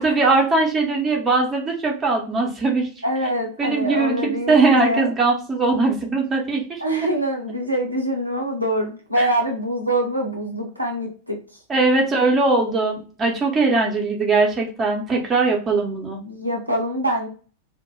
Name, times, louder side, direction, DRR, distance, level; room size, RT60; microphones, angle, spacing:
voice 1, 0.0-2.9 3.6-6.8 9.2-9.3 11.7-16.2, right 3 dB, 20° right, 0 dB, 0.8 m, -20 dB
voice 2, 3.0-5.1 6.8-11.4 16.2-17.3, right 1 dB, 85° right, 1 dB, 0.5 m, -24 dB
2.2 x 2.1 x 3.0 m, 0.38 s
figure-of-eight pair, 90°, 0 cm